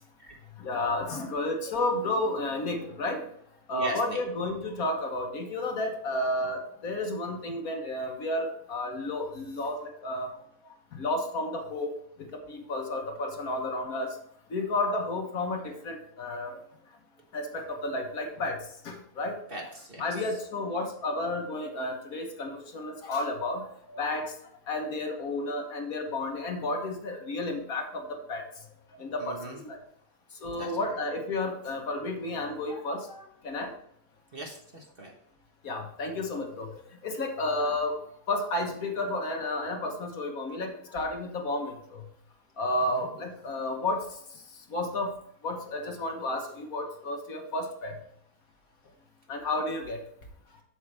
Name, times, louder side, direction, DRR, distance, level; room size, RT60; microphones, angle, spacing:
voice 1, 0.6-3.2 3.7-10.3 10.9-11.9 12.5-14.1 14.5-16.6 17.3-18.6 18.8-19.4 20.0-24.3 24.7-28.4 29.0-29.8 30.4-33.7 35.6-36.7 37.0-38.0 38.3-42.0 42.6-44.0 44.7-45.1 45.4-47.9 49.3-50.0, left 2 dB, 60° left, 3 dB, 1.4 m, -32 dB
voice 2, 3.7-4.2 19.5-20.2 29.2-29.6 30.5-31.0 34.3-35.1 42.9-43.1, right 1 dB, 35° right, 0 dB, 1.2 m, -39 dB
8.1 x 7.1 x 3.3 m, 0.72 s
omnidirectional pair, 1.8 m